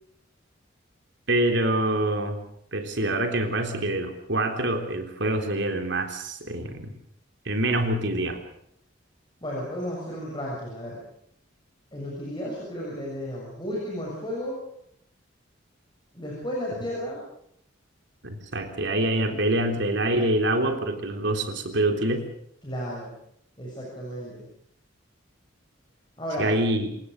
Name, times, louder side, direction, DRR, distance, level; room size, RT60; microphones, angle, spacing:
voice 1, 1.3-2.4 2.7-6.9 7.5-8.4 18.2-22.2 26.4-26.9, right 1 dB, 60° right, 5 dB, 3.7 m, -25 dB
voice 2, 9.4-11.0 11.9-14.6 16.1-17.2 19.3-19.4 22.6-23.1 23.6-24.4 26.2-26.5, equal, 25° left, -4 dB, 6.8 m, -33 dB
28.5 x 16.5 x 6.6 m, 0.72 s
head